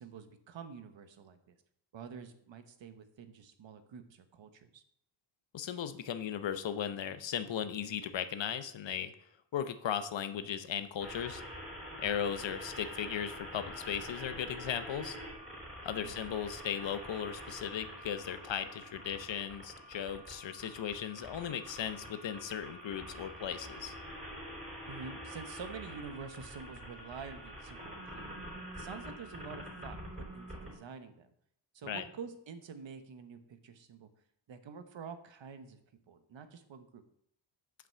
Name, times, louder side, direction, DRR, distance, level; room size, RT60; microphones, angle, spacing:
voice 1, 0.0-1.5 1.9-4.8 16.0-16.2 24.9-28.3 28.7-31.3 31.7-34.1 34.5-35.8 36.1-37.0, right 6 dB, 75° right, 8 dB, 1.1 m, -47 dB
voice 2, 5.5-9.1 9.5-11.4 12.0-15.2 15.8-23.9 31.9-32.0, left 9 dB, 70° left, 11 dB, 0.8 m, -37 dB
sound 1, 11.0-30.8, equal, 15° right, 3.7 m, -46 dB
7.7 x 5.9 x 6.9 m, 0.72 s
wide cardioid pair, 150°, 46 cm